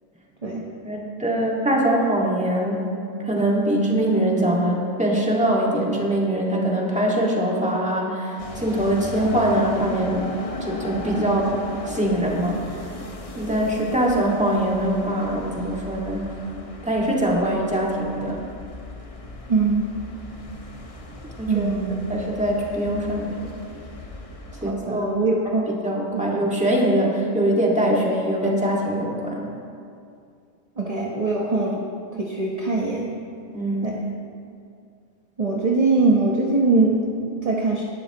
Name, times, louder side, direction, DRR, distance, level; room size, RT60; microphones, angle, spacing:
voice 1, 0.8-2.9 3.2-10.3 10.6-11.5 11.9-12.9 13.4-16.3 16.8-18.5 21.4-21.7 22.1-23.3 24.6-25.1 25.5-25.6 25.8-29.5 33.5-33.9, right 1 dB, 5° right, -3 dB, 1.9 m, -23 dB
sound 1, 8.4-24.7, left 2 dB, 30° left, 0.9 m, -37 dB
voice 2, 19.5-19.9 21.5-22.1 24.6-25.7 26.1-26.4 30.8-31.8 32.2-33.1 33.8-34.0 35.4-37.8, right 3 dB, 30° right, -2 dB, 1.1 m, -22 dB
18.5 x 12.0 x 3.0 m, 2.4 s
omnidirectional pair, 1.3 m